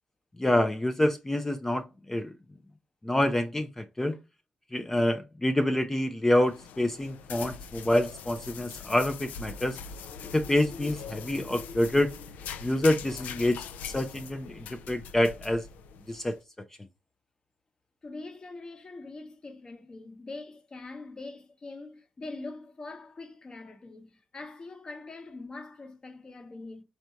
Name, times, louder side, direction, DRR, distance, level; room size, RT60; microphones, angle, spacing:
voice 1, 0.4-2.3 3.0-4.2 4.7-9.8 10.3-12.1 12.6-15.7 16.1-16.4, left 1 dB, 10° left, 0.5 m, -27 dB
sound 1, 6.3-16.3, left 6 dB, 90° left, 0.5 m, -42 dB
voice 2, 18.0-26.8, left 3 dB, 30° left, 1.0 m, -43 dB
4.5 x 2.7 x 4.4 m
cardioid pair, 110°, 3 cm